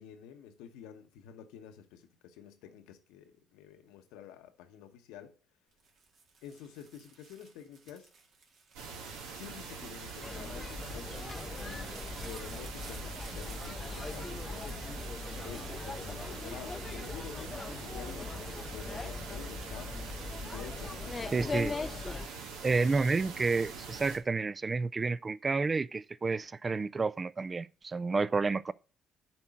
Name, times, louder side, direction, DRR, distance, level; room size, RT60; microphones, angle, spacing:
voice 1, 0.0-5.4 6.4-8.1 9.3-14.9 15.4-20.1 20.4-21.7, left 8 dB, 90° left, 0.9 m, -49 dB
sound 1, 5.7-17.1 17.6-18.2, right 4 dB, 65° right, 1.9 m, -56 dB
sound 2, 8.7-24.2, right 5 dB, 90° right, 1.4 m, -44 dB
sound 3, 10.2-22.3, left 3 dB, 30° left, 0.5 m, -40 dB
voice 2, 21.3-21.7 22.6-28.7, right 4 dB, 30° right, 0.3 m, -30 dB
7.3 x 4.5 x 6.2 m
supercardioid pair, 75°, 0 cm